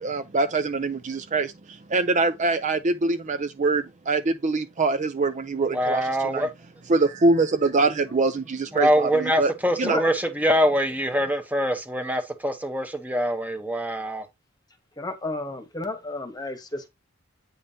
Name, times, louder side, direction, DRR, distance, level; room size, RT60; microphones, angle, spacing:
voice 1, 0.0-6.5 6.9-9.5 9.8-10.0, right 3 dB, 35° right, 0.5 m, -24 dB
voice 2, 5.7-6.5 8.7-14.3, equal, 10° right, 0.9 m, -24 dB
voice 3, 15.0-16.9, left 2 dB, 20° left, 1.2 m, -32 dB
8.6 x 5.2 x 2.8 m
head